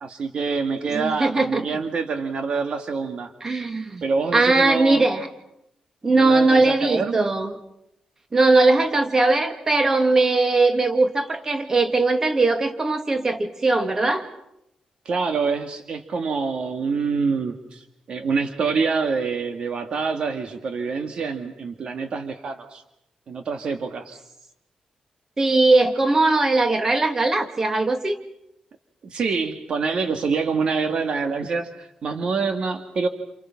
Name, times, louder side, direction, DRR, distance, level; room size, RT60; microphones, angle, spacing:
voice 1, 0.0-3.3 4.0-5.1 6.1-7.2 15.1-22.8 23.3-24.2 29.0-33.1, right 5 dB, 50° right, 6 dB, 1.9 m, -26 dB
voice 2, 0.9-1.6 3.4-4.0 4.3-5.3 6.0-7.5 8.3-14.2 25.4-28.2, right 3 dB, 25° right, 5 dB, 2.6 m, -20 dB
29.5 x 28.5 x 5.9 m, 0.81 s
wide cardioid pair, 175°, 2 cm